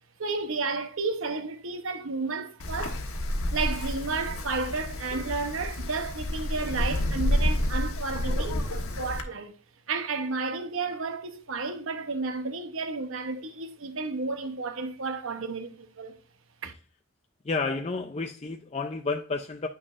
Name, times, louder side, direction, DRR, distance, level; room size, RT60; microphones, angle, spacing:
voice 1, 0.2-3.0 3.5-9.5 9.9-16.2 16.6-16.7, right 4 dB, 65° right, 0.9 m, -32 dB
Wind, 2.6-9.2, left 1 dB, 80° left, 1.3 m, -29 dB
voice 2, 17.4-19.7, left 3 dB, 30° left, 0.5 m, -31 dB
9.4 x 6.1 x 2.5 m
head